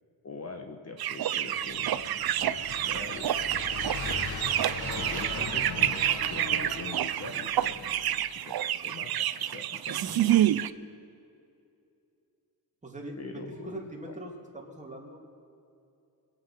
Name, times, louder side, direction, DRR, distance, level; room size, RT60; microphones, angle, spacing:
voice 1, 0.2-2.1 2.4-4.5 5.0-8.0 8.3-10.3 13.2-13.8 14.0-14.1, left 3 dB, 40° left, 4 dB, 1.2 m, -44 dB
sound 1, 1.0-10.7, right 11 dB, 65° right, 0.6 m, -28 dB
sound 2, 1.5-8.2, left 3 dB, 70° left, 1.9 m, -39 dB
voice 2, 12.8-15.2, right 1 dB, 20° right, 0 dB, 2.6 m, -42 dB
24.5 x 9.1 x 5.8 m, 2.6 s
wide cardioid pair, 110°, 40 cm